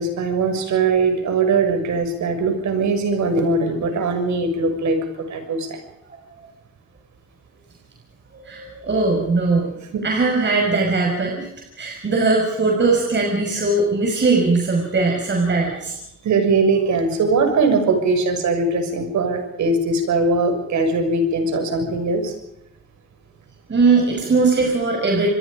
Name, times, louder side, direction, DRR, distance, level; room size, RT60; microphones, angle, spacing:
voice 1, 0.0-5.8 9.9-10.0 16.2-22.3, right 3 dB, 70° right, 6 dB, 6.6 m, -20 dB
voice 2, 8.3-9.7 10.0-11.5 11.8-16.0 21.9-22.0 23.7-25.3, right 3 dB, 35° right, 0 dB, 6.1 m, -20 dB
27.5 x 22.5 x 5.2 m, 0.80 s
cardioid pair, 90°, 30 cm